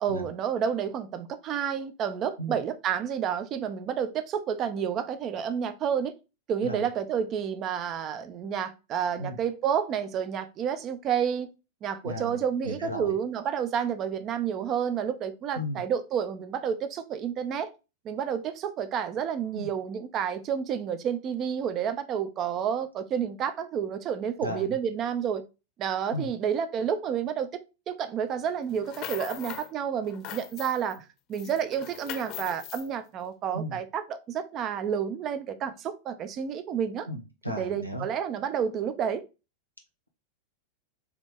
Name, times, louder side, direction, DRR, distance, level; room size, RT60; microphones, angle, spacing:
voice 1, 0.0-6.1 6.5-11.5 11.8-17.7 18.0-25.4 25.8-27.5 27.9-37.1 37.5-39.2, right 8 dB, 35° right, 0.5 m, -30 dB
voice 2, 12.0-12.4 12.6-13.2 15.5-15.8 19.5-19.7 24.4-24.8 26.1-26.3 33.5-33.8 37.1-38.0, equal, 90° right, 0.8 m, -35 dB
sound 1, 28.7-29.7 30.0-31.0 31.3-32.9, left 13 dB, 40° left, 0.7 m, -40 dB
3.6 x 2.9 x 3.5 m
figure-of-eight pair, 90°, 0 cm